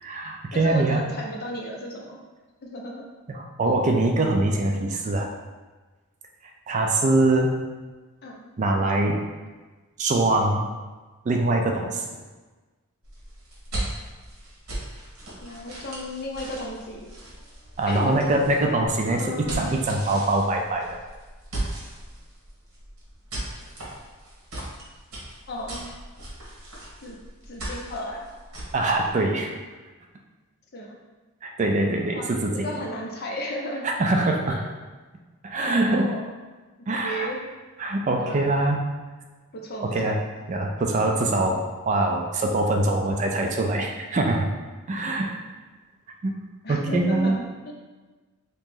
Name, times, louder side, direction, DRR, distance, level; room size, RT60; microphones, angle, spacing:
voice 1, 0.0-1.0 3.3-5.3 6.7-7.5 8.6-9.2 10.0-10.7 11.3-12.0 17.8-21.0 28.7-29.5 31.4-32.7 33.8-34.6 35.4-36.1 36.9-37.3 37.8-38.8 39.8-40.2 40.5-44.5 44.9-45.3 46.2-46.3 46.7-47.4, right 2 dB, 35° right, 2 dB, 0.3 m, -23 dB
voice 2, 0.5-2.2 2.6-3.1 3.6-3.7 8.2-8.5 15.4-17.1 17.9-18.2 19.2-19.9 25.5-25.9 27.0-27.2 27.5-28.3 30.7-31.0 32.1-33.9 34.2-34.6 35.6-36.3 36.9-37.5 38.2-38.5 39.5-40.2 46.6-47.7, equal, 45° left, -1 dB, 0.6 m, -34 dB
sound 1, 13.0-29.1, right 1 dB, 65° right, 1.2 m, -38 dB
3.0 x 2.8 x 3.6 m, 1.3 s
head